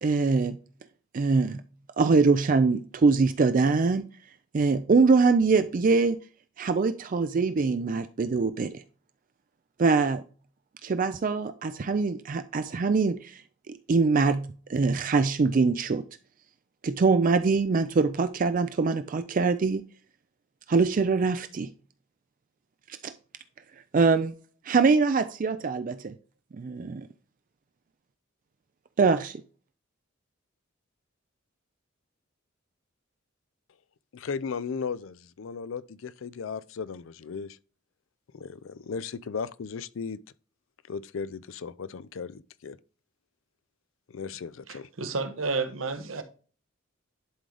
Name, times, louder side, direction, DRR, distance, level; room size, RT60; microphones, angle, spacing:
voice 1, 0.0-0.6 1.1-1.6 2.0-4.1 4.5-6.2 6.6-8.8 9.8-10.2 10.8-13.4 13.7-16.0 16.8-19.8 20.7-21.7 23.0-23.1 23.9-24.3 24.6-26.1 26.5-27.1 29.0-29.4, right 4 dB, 40° right, 0.4 m, -23 dB
voice 2, 34.1-37.6 38.3-40.2 40.9-42.8 44.1-44.9, left 5 dB, 75° left, 0.4 m, -36 dB
voice 3, 44.7-46.2, right 4 dB, 80° right, 1.1 m, -31 dB
11.0 x 3.8 x 3.3 m
head